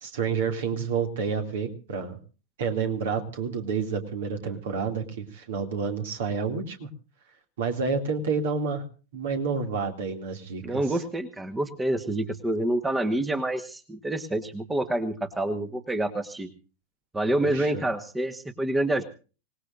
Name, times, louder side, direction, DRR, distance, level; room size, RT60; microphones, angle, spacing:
voice 1, 0.0-2.2 2.6-6.9 7.6-8.8 9.1-10.8 17.4-17.9, right 5 dB, 55° right, 5 dB, 2.5 m, -29 dB
voice 2, 10.6-16.5 17.1-19.1, right 1 dB, 10° right, 10 dB, 1.3 m, -27 dB
25.5 x 19.0 x 2.6 m, 0.36 s
figure-of-eight pair, 90°, 0 cm